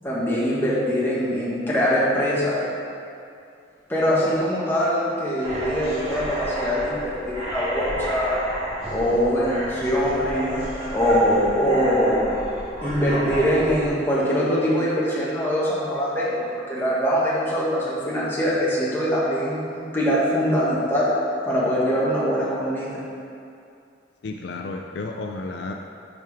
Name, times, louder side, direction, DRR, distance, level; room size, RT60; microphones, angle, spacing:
voice 1, 0.0-2.6 3.9-8.4 8.9-10.5 10.9-12.3 12.8-21.1 21.4-23.0, equal, 10° left, -8 dB, 1.6 m, -23 dB
sound 1, 5.4-13.9, right 1 dB, 35° right, 1.7 m, -31 dB
voice 2, 24.2-25.7, left 3 dB, 65° left, 3 dB, 0.4 m, -32 dB
10.5 x 4.5 x 3.5 m, 2.5 s
head